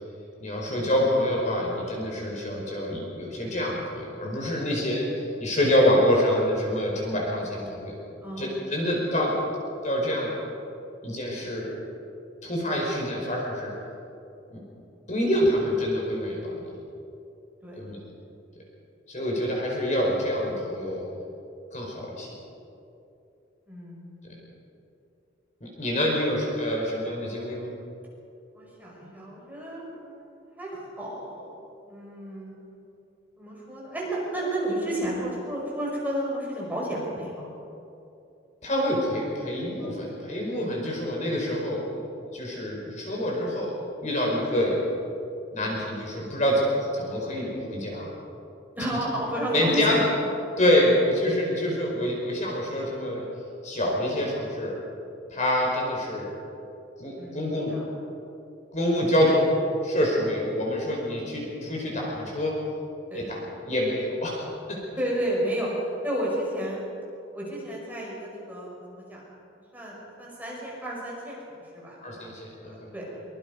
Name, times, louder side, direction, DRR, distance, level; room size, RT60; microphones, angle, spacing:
voice 1, 0.4-8.0 8.4-9.3 9.8-10.3 11.0-11.8 12.4-13.7 14.5-14.6 15.1-16.6 17.8-18.0 19.1-21.0 21.7-22.3 24.2-24.3 25.6-27.7 38.6-43.8 44.0-44.8 45.5-46.7 46.9-48.1 49.5-50.0 50.6-53.2 53.6-54.7 55.3-56.3 57.0-57.8 58.7-59.5 59.8-62.5 63.1-64.8 72.0-72.9, left 1 dB, 40° left, -2 dB, 4.9 m, -26 dB
voice 2, 8.2-8.6 17.6-17.8 23.7-24.3 28.5-32.6 33.4-37.5 39.8-40.0 42.5-42.6 48.7-50.0 54.2-54.3 57.2-57.8 59.3-59.4 63.1-63.4 65.0-66.8 67.3-69.2 69.7-73.1, right 1 dB, 10° right, -4 dB, 5.8 m, -32 dB
24.0 x 23.0 x 5.4 m, 2.8 s
head